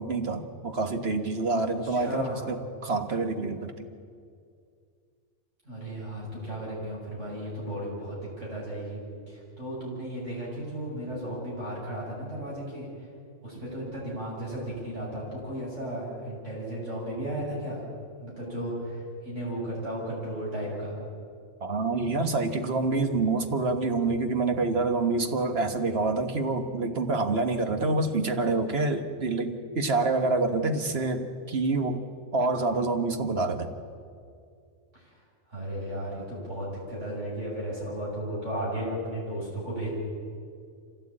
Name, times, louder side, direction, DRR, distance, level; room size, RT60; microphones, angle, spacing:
voice 1, 0.0-3.9 21.6-32.0 32.3-33.7, right 3 dB, 55° right, 6 dB, 1.7 m, -27 dB
voice 2, 1.8-2.4 5.6-9.0 9.3-12.9 13.4-17.8 18.2-20.9 34.9-35.0 35.5-40.0, right 1 dB, 75° right, -5 dB, 8.1 m, -34 dB
25.0 x 16.5 x 8.8 m, 2.3 s
omnidirectional pair, 1.3 m